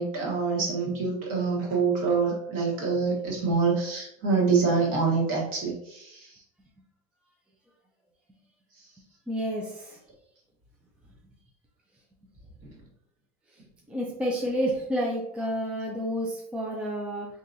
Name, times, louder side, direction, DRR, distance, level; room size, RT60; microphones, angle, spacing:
voice 1, 0.0-6.3 12.6-12.7, right 4 dB, 45° right, -3 dB, 1.4 m, -26 dB
voice 2, 9.3-10.0 13.9-17.3, equal, 5° right, -3 dB, 0.4 m, -30 dB
3.8 x 2.8 x 2.5 m, 0.74 s
supercardioid pair, 155°, 18 cm